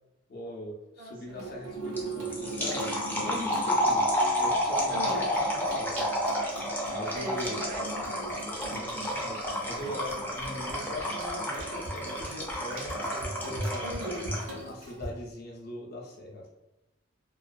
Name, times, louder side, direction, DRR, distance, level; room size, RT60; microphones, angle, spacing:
voice 1, 0.3-6.0 6.9-7.6 8.7-14.0 14.6-16.5, left 1 dB, 55° left, -1 dB, 0.6 m, -41 dB
voice 2, 1.0-1.4 4.9-5.3 7.1-8.4 13.8-14.4, right 1 dB, 45° right, 0 dB, 0.5 m, -39 dB
Water tap faucet / Sink (filling or washing), 1.3-15.1, right 2 dB, 85° right, 0.7 m, -40 dB
sound 1, 2.0-14.6, equal, 10° left, 0.4 m, -31 dB
2.4 x 2.2 x 2.4 m, 0.95 s
head